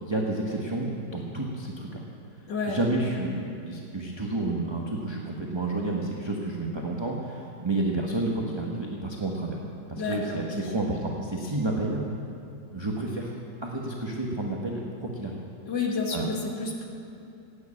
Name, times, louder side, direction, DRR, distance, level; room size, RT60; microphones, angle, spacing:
voice 1, 0.0-2.0 2.6-9.6 9.9-12.0 12.7-13.3 13.6-15.3 15.9-16.3, right 2 dB, 20° right, -1 dB, 0.9 m, -30 dB
voice 2, 2.5-2.8 9.9-10.4 15.7-16.9, left 4 dB, 75° left, 0 dB, 2.4 m, -30 dB
15.0 x 9.1 x 8.5 m, 2.6 s
omnidirectional pair, 1.9 m